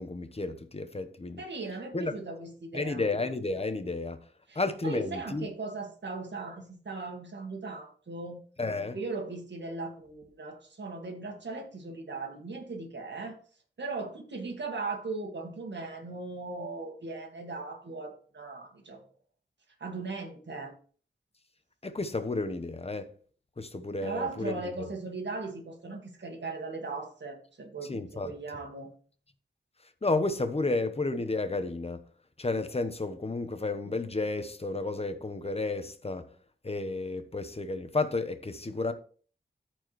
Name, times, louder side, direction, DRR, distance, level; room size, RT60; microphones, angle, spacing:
voice 1, 0.0-1.4 1.9-2.1 2.7-4.2 4.5-5.5 8.6-9.0 21.8-23.1 23.6-24.9 27.9-28.3 30.0-32.0 32.4-36.3 36.6-38.9, left 3 dB, 35° left, 1.0 m, -32 dB
voice 2, 1.4-3.1 4.5-8.4 8.9-13.4 13.8-19.0 19.8-20.7 24.0-28.9, right 3 dB, 80° right, 1.8 m, -38 dB
13.5 x 4.6 x 3.1 m
wide cardioid pair, 80°, 18 cm